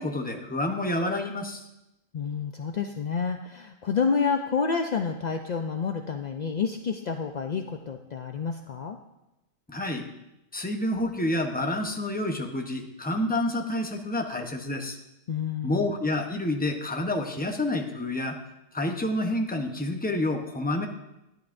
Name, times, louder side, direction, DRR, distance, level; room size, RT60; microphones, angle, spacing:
voice 1, 0.0-1.6 9.7-10.1 10.5-15.0 15.6-18.4 18.7-20.9, left 1 dB, 10° left, 3 dB, 0.7 m, -28 dB
voice 2, 2.1-9.0 15.3-15.9, left 5 dB, 65° left, 5 dB, 0.4 m, -29 dB
13.5 x 11.0 x 2.6 m, 0.92 s
omnidirectional pair, 1.4 m